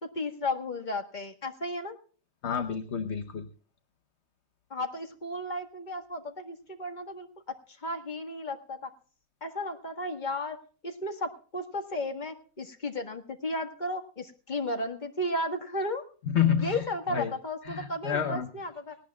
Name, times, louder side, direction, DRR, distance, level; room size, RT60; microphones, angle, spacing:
voice 1, 0.0-1.9 4.7-8.9 9.4-16.0 16.6-19.0, left 1 dB, 30° left, 4 dB, 1.8 m, -34 dB
voice 2, 2.4-3.5 16.3-16.8 17.1-17.3 17.6-18.5, left 8 dB, 55° left, 8 dB, 1.1 m, -28 dB
19.0 x 18.0 x 2.3 m, 0.42 s
omnidirectional pair, 1.5 m